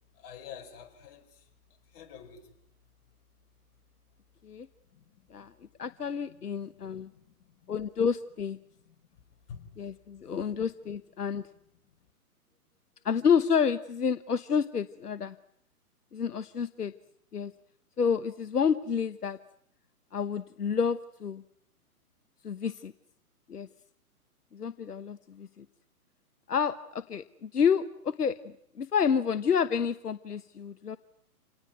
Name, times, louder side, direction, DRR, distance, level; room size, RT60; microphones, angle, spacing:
voice 1, 0.2-1.5 1.9-2.5 4.9-5.3 5.9-7.7 8.8-9.0 9.5-9.7, left 7 dB, 40° left, 3 dB, 5.2 m, -49 dB
voice 2, 5.8-7.1 7.7-8.6 9.8-11.5 13.0-15.4 16.1-16.9 17.3-17.5 18.0-19.4 20.1-21.4 22.4-22.9 23.5-23.7 24.5-25.6 26.5-31.0, left 7 dB, 85° left, 12 dB, 1.2 m, -29 dB
28.0 x 19.0 x 9.4 m, 0.71 s
hypercardioid pair, 135°, 45 cm